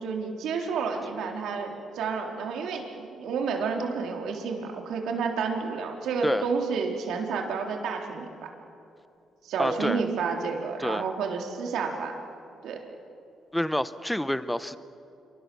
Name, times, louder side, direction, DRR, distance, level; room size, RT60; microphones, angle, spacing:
voice 1, 0.0-8.3 9.4-12.1 12.6-12.8, right 5 dB, 80° right, 2 dB, 3.6 m, -30 dB
voice 2, 9.6-10.0 10.8-11.0 13.5-14.8, left 1 dB, 5° left, 14 dB, 1.0 m, -28 dB
27.5 x 24.0 x 7.1 m, 2.6 s
cardioid pair, 90°, 0 cm